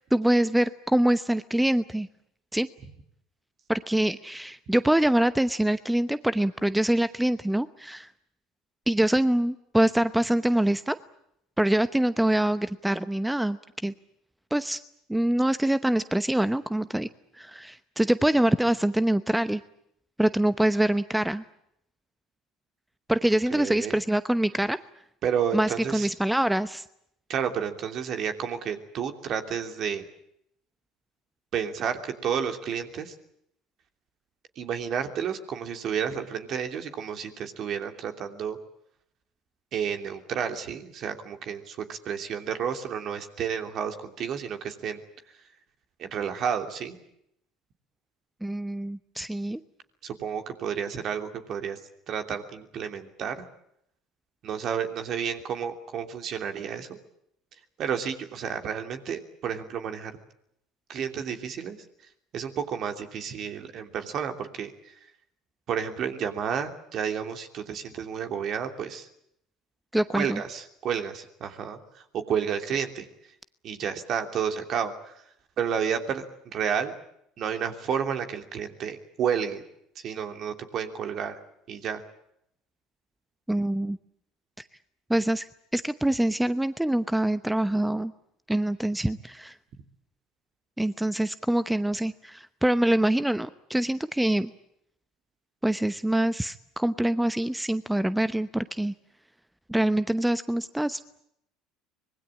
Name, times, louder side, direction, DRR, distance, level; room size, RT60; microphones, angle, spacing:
voice 1, 0.0-2.1 2.5-2.7 3.7-8.1 8.9-11.0 11.6-13.9 14.5-14.8 15.1-17.1 17.4-19.6 20.2-21.4 23.1-24.8 25.5-26.8 48.4-49.6 69.9-70.4 83.5-84.0 84.6-84.7 85.1-85.5 85.7-88.1 88.5-89.6 90.8-94.5 95.6-98.9 99.7-101.0, right 1 dB, 5° right, 13 dB, 0.9 m, -25 dB
voice 2, 23.5-24.0 25.2-26.1 27.3-30.1 31.5-33.1 34.6-38.6 39.7-45.0 46.0-47.0 50.0-51.8 52.1-53.5 54.4-57.0 57.8-60.2 60.9-61.8 62.3-64.7 65.7-69.1 70.1-73.1 73.6-75.2 75.6-76.9 77.4-79.6 80.0-81.4 81.7-82.0, right 7 dB, 50° right, 6 dB, 3.0 m, -31 dB
25.5 x 20.5 x 8.7 m, 0.75 s
hypercardioid pair, 70°, 0 cm